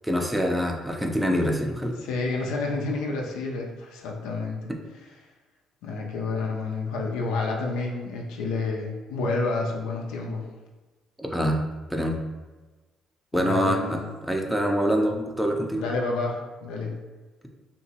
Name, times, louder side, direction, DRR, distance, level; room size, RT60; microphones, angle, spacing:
voice 1, 0.0-1.9 4.7-4.8 11.2-11.6 11.9-12.2 13.3-15.8, equal, 5° right, 2 dB, 0.4 m, -25 dB
voice 2, 2.0-4.7 5.8-10.4 13.3-14.1 15.8-16.9, left 3 dB, 80° left, 0 dB, 0.4 m, -29 dB
2.8 x 2.2 x 2.7 m, 1.2 s
hypercardioid pair, 60°, 0 cm